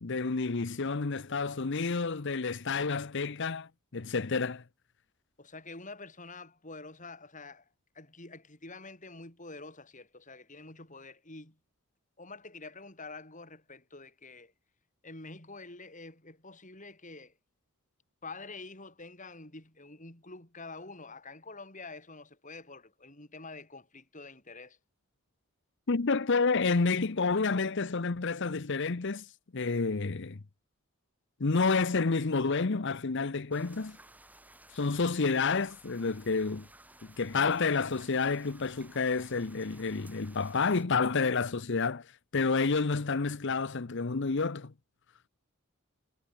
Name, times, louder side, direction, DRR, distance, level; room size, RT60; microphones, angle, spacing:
voice 1, 0.0-4.6 25.9-29.2 29.5-30.4 31.4-34.0 34.7-36.7 37.2-42.1 42.3-44.7, left 4 dB, 55° left, 0.8 m, -29 dB
voice 2, 5.4-7.7 7.9-11.6 12.2-14.5 15.0-17.3 18.2-24.8, left 3 dB, 35° left, 6.4 m, -47 dB
sound 1, 33.5-40.8, right 1 dB, 5° right, 3.1 m, -56 dB
head